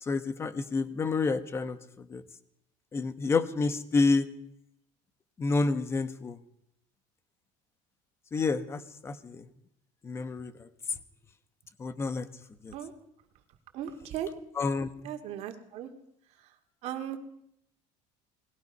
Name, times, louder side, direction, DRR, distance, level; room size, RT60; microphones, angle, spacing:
voice 1, 0.0-2.2 2.9-4.3 5.4-6.4 8.3-9.5 10.0-11.0 11.8-12.3 12.6-12.7 14.5-14.9, left 4 dB, 20° left, 12 dB, 1.2 m, -29 dB
voice 2, 13.7-14.3 15.0-15.9 16.8-17.2, right 10 dB, 50° right, 6 dB, 2.2 m, -37 dB
29.5 x 20.5 x 5.5 m, 0.74 s
cardioid pair, 175°, 14 cm